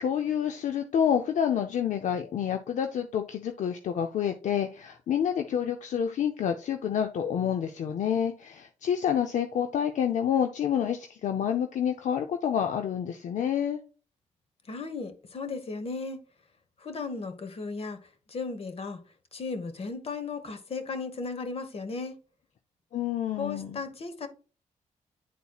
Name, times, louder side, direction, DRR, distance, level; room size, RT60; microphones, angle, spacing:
voice 1, 0.0-13.8 22.9-23.8, left 8 dB, 70° left, 0.6 m, -28 dB
voice 2, 14.7-16.2 16.8-18.0 18.3-19.0 19.3-22.2 23.4-24.3, left 4 dB, 50° left, 1.3 m, -35 dB
10.0 x 4.1 x 2.4 m
cardioid pair, 80°, 13 cm